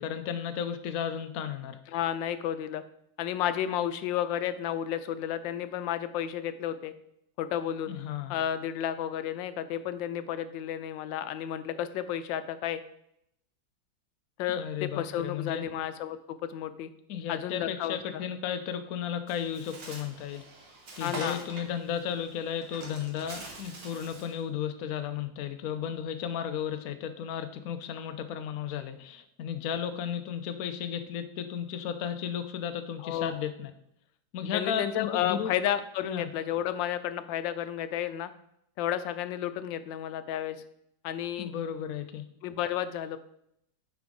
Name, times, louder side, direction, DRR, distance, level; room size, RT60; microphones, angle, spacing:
voice 1, 0.0-1.8 7.9-8.3 14.5-15.6 17.1-20.4 21.0-33.7 34.3-35.5 36.0-36.3 41.4-42.2, left 8 dB, 65° left, 8 dB, 0.9 m, -34 dB
voice 2, 1.9-2.8 3.2-6.9 7.4-7.9 8.3-12.8 14.4-16.9 17.3-18.2 21.0-21.4 33.0-33.4 34.5-38.3 38.8-40.6 41.0-41.5 42.4-43.2, left 10 dB, 85° left, 12 dB, 1.3 m, -32 dB
Bird, 19.3-24.4, right 3 dB, 75° right, 2.0 m, -44 dB
9.5 x 4.9 x 3.7 m, 0.75 s
omnidirectional pair, 2.0 m